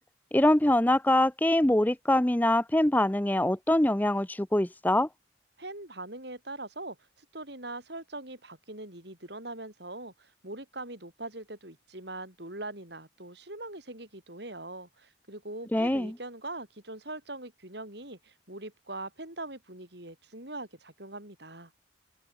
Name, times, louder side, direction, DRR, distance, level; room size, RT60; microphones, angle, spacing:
voice 1, 0.3-5.1 15.7-16.1, left 1 dB, 10° left, 0.6 m, -24 dB
voice 2, 5.6-21.7, right 2 dB, 55° right, 5.7 m, -42 dB
open air
head